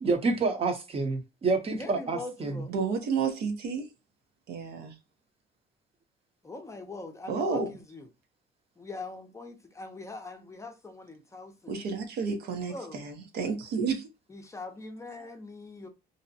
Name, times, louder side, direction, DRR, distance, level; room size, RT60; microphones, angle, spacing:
voice 1, 0.0-2.5, right 3 dB, 35° right, 0.7 m, -28 dB
voice 2, 1.7-2.7 6.4-8.1 8.8-11.8 12.7-13.0 14.3-15.9, left 2 dB, 15° left, 0.5 m, -42 dB
voice 3, 2.7-3.9 4.5-4.9 7.3-7.7 11.7-14.1, right 5 dB, 70° right, 0.7 m, -31 dB
2.6 x 2.1 x 2.6 m
cardioid pair, 110°, 17 cm